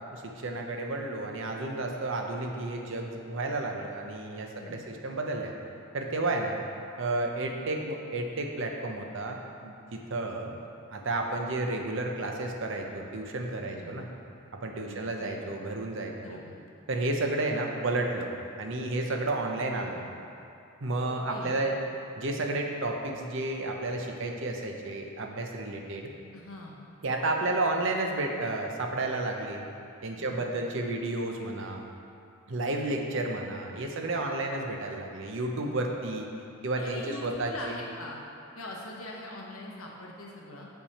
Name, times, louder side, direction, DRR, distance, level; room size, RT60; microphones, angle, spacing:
voice 1, 0.1-5.5 5.9-6.6 7.0-10.5 10.9-14.1 14.5-16.4 16.9-18.3 18.6-20.0 20.8-21.7 22.2-26.1 27.0-29.6 30.0-31.8 32.5-36.3 36.6-37.8, right 2 dB, 60° right, 2 dB, 0.7 m, -32 dB
voice 2, 4.5-5.0 13.6-14.0 14.9-15.2 16.2-16.5 19.8-20.1 21.0-21.7 26.3-26.8 30.1-30.5 35.5-35.8 36.8-38.2 38.5-40.7, left 1 dB, 80° left, -2 dB, 1.1 m, -43 dB
6.8 x 5.9 x 4.2 m, 2.6 s
head